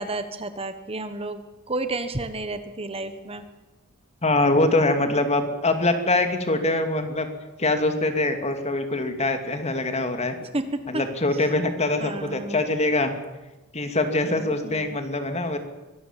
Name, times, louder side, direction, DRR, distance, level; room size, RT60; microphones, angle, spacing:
voice 1, 0.0-3.4 10.4-10.7 10.9-11.0 11.3-11.5 12.0-12.7 14.3-15.0, right 2 dB, 25° right, 9 dB, 1.2 m, -32 dB
voice 2, 4.2-7.3 7.6-10.3 10.9-13.1 13.7-15.6, left 2 dB, 30° left, 7 dB, 2.5 m, -23 dB
24.5 x 19.0 x 7.4 m, 1.1 s
head